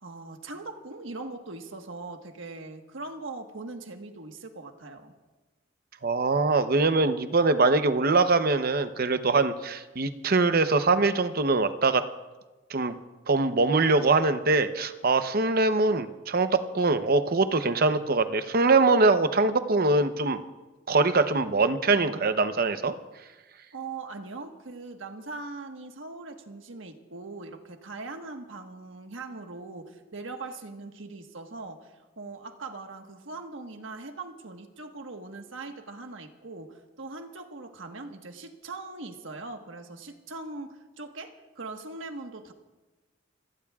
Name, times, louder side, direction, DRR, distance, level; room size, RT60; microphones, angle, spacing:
voice 1, 0.0-5.1 23.7-42.5, right 3 dB, 85° right, 4 dB, 1.4 m, -41 dB
voice 2, 6.0-12.0 12.7-13.0 13.3-20.4 20.9-22.9, right 3 dB, 50° right, 10 dB, 0.8 m, -23 dB
28.5 x 17.5 x 2.4 m, 1.2 s
head